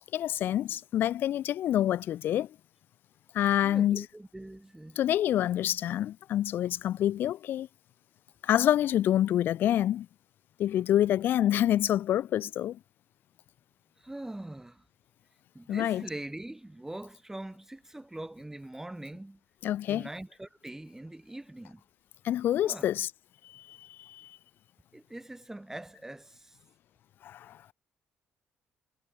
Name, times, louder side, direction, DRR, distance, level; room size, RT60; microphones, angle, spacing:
voice 1, 0.1-2.5 3.3-4.0 5.0-7.7 8.4-10.1 10.6-12.8 15.7-16.0 19.6-20.1 22.2-23.1 23.5-24.4 27.2-27.6, left 12 dB, 65° left, 0.6 m, -27 dB
voice 2, 3.6-5.0 14.0-14.8 15.5-19.4 19.9-21.8 22.6-22.9 24.9-26.6, right 1 dB, 10° right, 2.4 m, -42 dB
supercardioid pair, 60°, 4 cm